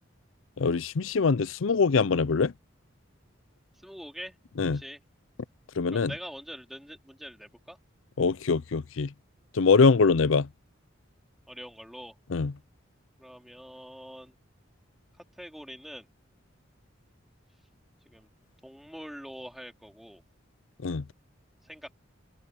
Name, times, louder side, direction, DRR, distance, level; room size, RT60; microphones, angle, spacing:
voice 1, 0.6-2.5 4.6-4.8 5.8-6.1 8.2-9.1 9.5-10.5 12.3-12.5 20.8-21.0, left 4 dB, 85° left, 0.6 m, -23 dB
voice 2, 3.8-4.3 4.7-5.0 5.9-7.8 11.5-12.2 13.2-14.4 15.3-16.1 18.0-18.3 18.6-20.2 21.6-21.9, equal, ahead, 3.0 m, -44 dB
open air
head